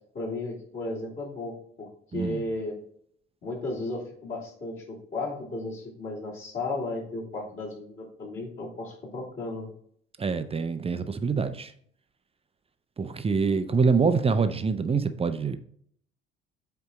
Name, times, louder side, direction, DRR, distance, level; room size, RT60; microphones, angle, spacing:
voice 1, 0.1-2.8 3.4-9.7, left 2 dB, 40° left, 3.2 m, -34 dB
voice 2, 2.1-2.4 10.2-11.7 13.0-15.6, right 5 dB, 20° right, 0.6 m, -25 dB
8.0 x 4.6 x 3.9 m
figure-of-eight pair, 55°, 32 cm